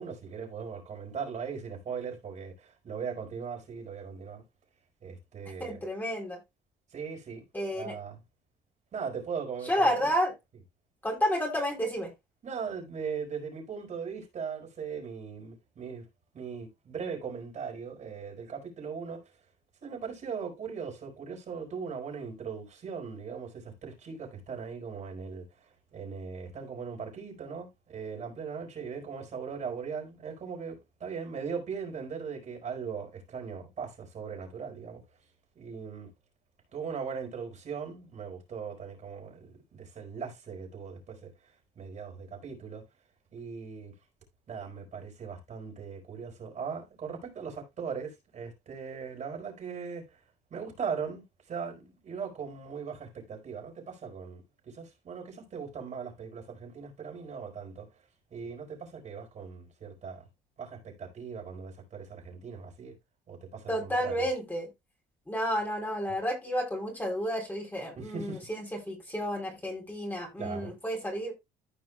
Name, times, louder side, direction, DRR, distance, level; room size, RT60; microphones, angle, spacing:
voice 1, 0.0-4.4 5.0-5.8 6.9-7.4 7.8-8.2 8.9-9.9 12.4-16.0 16.3-19.2 19.8-25.4 25.9-35.0 35.5-36.1 36.7-41.3 41.8-42.8 43.3-43.9 44.5-50.0 50.5-57.9 58.3-60.2 60.6-62.9 63.3-64.3 67.9-68.5 70.4-70.7, right 6 dB, 45° right, 4.5 m, -39 dB
voice 2, 5.6-6.4 7.5-8.0 9.7-10.3 11.0-12.1 63.7-64.7 65.3-71.3, equal, 10° left, 3.7 m, -31 dB
15.0 x 5.1 x 2.3 m
cardioid pair, 110°, 17 cm